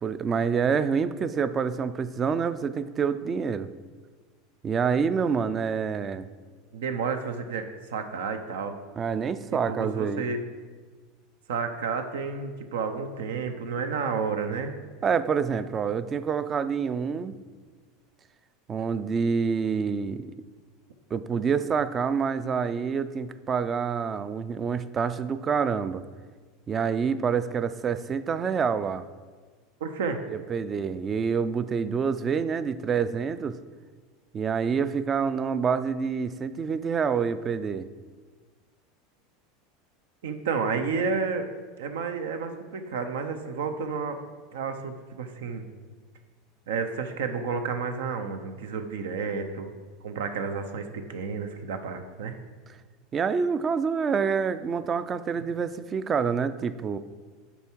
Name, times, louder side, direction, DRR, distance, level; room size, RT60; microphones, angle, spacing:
voice 1, 0.0-3.7 4.6-6.3 9.0-10.3 15.0-17.3 18.7-20.3 21.1-26.0 26.7-29.1 30.3-33.6 34.3-37.9 53.1-57.0, right 6 dB, 25° right, 13 dB, 0.3 m, -27 dB
voice 2, 6.7-8.8 9.5-10.4 11.5-14.8 29.8-30.2 40.2-41.5 41.8-44.2 44.5-45.7 46.7-49.7 50.0-52.4, right 5 dB, 90° right, 7 dB, 0.6 m, -31 dB
6.9 x 4.6 x 4.5 m, 1.5 s
supercardioid pair, 130°, 0 cm